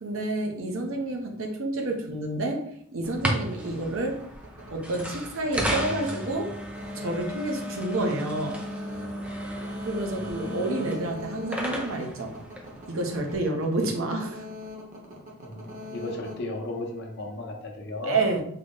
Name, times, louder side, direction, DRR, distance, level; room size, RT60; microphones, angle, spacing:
voice 1, 0.0-2.6 2.9-4.2 4.7-6.6 6.9-8.6 9.8-12.3 12.9-14.4 18.0-18.4, right 2 dB, 65° right, 2 dB, 0.7 m, -29 dB
sound 1, 3.0-13.3, equal, 5° right, 0.4 m, -34 dB
sound 2, 3.6-17.4, left 3 dB, 35° right, 0.8 m, -43 dB
voice 2, 10.1-10.9 15.4-18.2, left 2 dB, 50° left, 1 dB, 0.6 m, -35 dB
3.8 x 2.0 x 3.6 m, 0.67 s
head